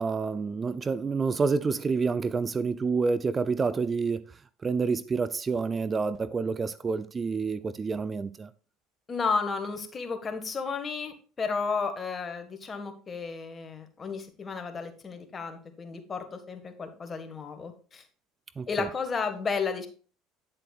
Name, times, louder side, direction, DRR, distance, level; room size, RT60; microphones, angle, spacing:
voice 1, 0.0-4.3 4.6-8.5 18.6-18.9, right 4 dB, 30° right, 0.4 m, -28 dB
voice 2, 9.1-18.0 18.7-19.9, left 5 dB, 30° left, 1.6 m, -33 dB
9.4 x 7.6 x 2.4 m
hypercardioid pair, 80°, 0 cm